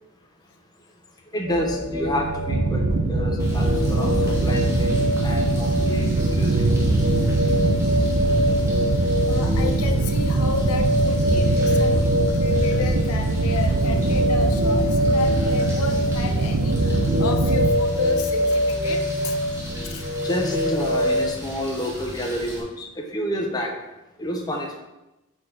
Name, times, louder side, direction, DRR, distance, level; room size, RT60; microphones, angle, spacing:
voice 1, 1.3-6.7 11.3-11.5 20.2-23.7 24.2-24.8, equal, 20° left, 1 dB, 0.7 m, -29 dB
sound 1, 1.4-21.3, left 1 dB, 45° right, 0.9 m, -25 dB
sound 2, 2.5-17.7, right 3 dB, 70° right, 0.6 m, -22 dB
sound 3, 3.4-22.6, right 1 dB, 10° right, 1.1 m, -40 dB
voice 2, 9.3-19.4 19.8-20.1, left 5 dB, 75° left, 5 dB, 0.6 m, -32 dB
4.4 x 4.3 x 4.9 m, 0.99 s
head